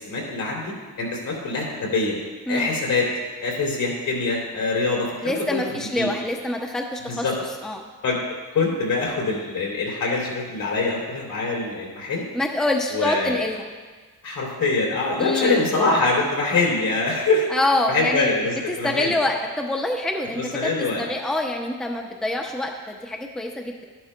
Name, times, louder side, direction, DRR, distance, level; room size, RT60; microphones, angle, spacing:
voice 1, 0.0-2.2 2.5-3.1 3.4-6.1 7.1-7.3 8.0-8.2 8.5-12.3 12.9-13.4 14.2-17.5 17.9-19.1 20.3-21.0, left 3 dB, 70° left, -2 dB, 3.0 m, -24 dB
voice 2, 5.2-7.3 7.6-7.8 12.3-13.7 15.2-15.6 17.5-18.3 18.7-20.7 21.0-23.8, left 1 dB, ahead, 1 dB, 0.6 m, -26 dB
13.0 x 11.0 x 2.2 m, 1.4 s
cardioid pair, 135°, 34 cm